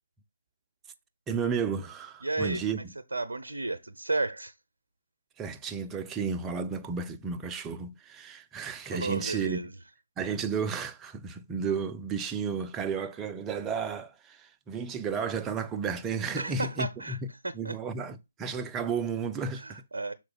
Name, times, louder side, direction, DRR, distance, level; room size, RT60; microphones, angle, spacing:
voice 1, 1.3-2.8 5.4-9.6 10.2-17.2 17.5-19.8, right 5 dB, 15° right, 0.5 m, -33 dB
voice 2, 2.2-2.8 3.1-4.5 8.9-9.7 16.4-17.2 17.4-17.7 19.6-20.1, right 2 dB, 70° right, 0.6 m, -33 dB
6.5 x 4.4 x 4.1 m
figure-of-eight pair, 140°, 0 cm